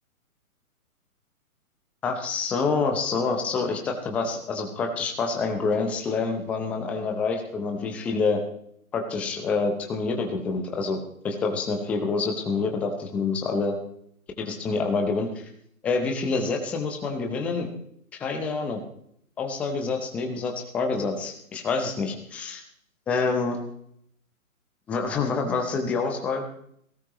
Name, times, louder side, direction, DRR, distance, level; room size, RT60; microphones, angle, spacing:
voice 1, 2.0-8.4 8.9-11.0 11.2-13.8 14.4-15.5 15.8-17.7 18.2-18.8 19.4-22.6 23.1-23.6 24.9-26.4, left 4 dB, 5° left, 3 dB, 0.6 m, -27 dB
19.0 x 17.0 x 3.0 m, 0.68 s
figure-of-eight pair, 135°, 44 cm